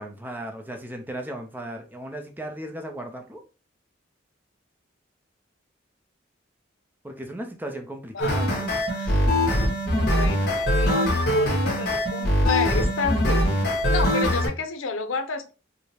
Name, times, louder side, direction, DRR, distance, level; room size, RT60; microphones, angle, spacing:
voice 1, 0.0-3.4 7.0-8.7, right 1 dB, 10° right, 3 dB, 0.5 m, -36 dB
voice 2, 8.1-9.3 9.9-13.4 13.9-15.5, left 4 dB, 85° left, 7 dB, 0.6 m, -31 dB
sound 1, 8.2-14.5, equal, 50° left, 1.2 m, -22 dB
4.7 x 2.1 x 2.8 m, 0.33 s
head